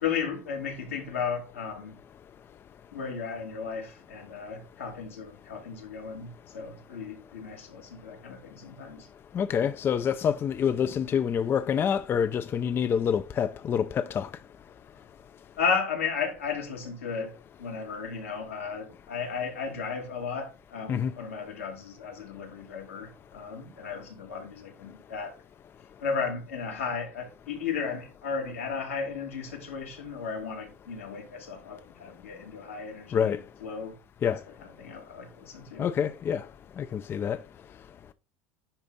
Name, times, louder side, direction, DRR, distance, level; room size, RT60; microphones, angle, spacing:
voice 1, 0.0-2.0 2.9-9.1 15.6-25.4 26.0-34.0 34.3-35.9, left 6 dB, 90° left, 2.7 m, -34 dB
voice 2, 9.3-14.3 20.9-21.1 33.1-33.4 34.2-34.4 35.8-36.4 36.8-37.4, left 8 dB, 35° left, 0.5 m, -27 dB
10.0 x 3.5 x 4.0 m
hypercardioid pair, 85°, 7 cm